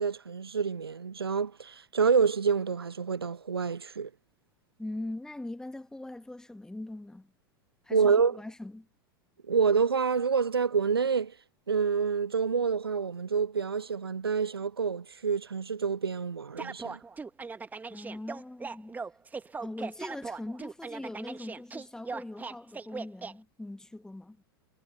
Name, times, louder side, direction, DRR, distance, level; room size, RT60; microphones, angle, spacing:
voice 1, 0.0-4.1 7.9-8.4 9.5-11.3 11.7-17.0, right 6 dB, 80° right, 0.7 m, -27 dB
voice 2, 4.8-7.3 7.8-8.9 17.9-18.9 19.6-24.4, left 2 dB, 5° left, 1.8 m, -41 dB
sound 1, 16.6-23.3, right 4 dB, 15° right, 1.9 m, -39 dB
figure-of-eight pair, 85°, 12 cm